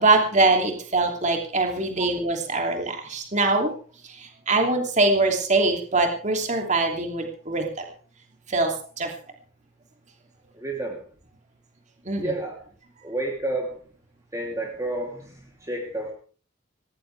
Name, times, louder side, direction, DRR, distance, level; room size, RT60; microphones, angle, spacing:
voice 1, 0.0-3.7 4.0-7.8 8.5-9.1 12.0-12.3, right 3 dB, 35° right, 3 dB, 3.0 m, -23 dB
voice 2, 10.5-11.0 12.2-12.6 13.0-13.8 14.3-16.1, right 1 dB, 15° right, 0 dB, 3.2 m, -30 dB
18.0 x 18.0 x 3.5 m, 0.41 s
head